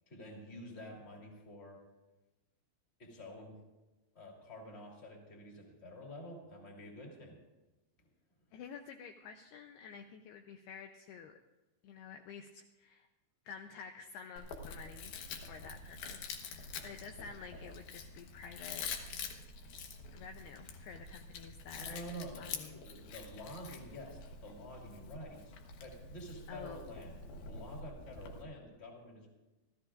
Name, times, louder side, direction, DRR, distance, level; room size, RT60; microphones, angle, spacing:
voice 1, 0.1-1.8 3.0-3.6 4.1-7.4 21.8-25.5 25.8-27.2 27.4-29.3, equal, 15° left, -1 dB, 2.4 m, -48 dB
voice 2, 8.5-11.4 11.8-13.1 13.5-18.9 19.2-19.5 20.1-22.9 26.5-26.9, left 6 dB, 85° left, 5 dB, 2.3 m, -50 dB
Chewing mastication, 14.4-28.4, left 5 dB, 65° left, 2.7 m, -47 dB
27.0 x 15.0 x 2.5 m, 1.1 s
omnidirectional pair, 5.5 m